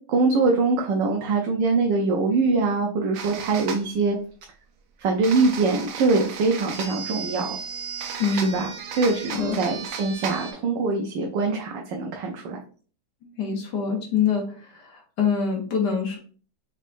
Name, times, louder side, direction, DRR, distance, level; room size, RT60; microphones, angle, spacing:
voice 1, 0.1-4.2 5.0-7.6 8.3-12.6, right 3 dB, 85° right, 1 dB, 1.3 m, -23 dB
sound 1, 3.1-3.8 5.2-10.5, right 6 dB, 65° right, 0.8 m, -34 dB
voice 2, 8.2-8.6 9.3-9.6 13.4-16.2, left 6 dB, 70° left, 2 dB, 1.4 m, -25 dB
4.2 x 3.5 x 2.5 m, 0.41 s
omnidirectional pair, 1.9 m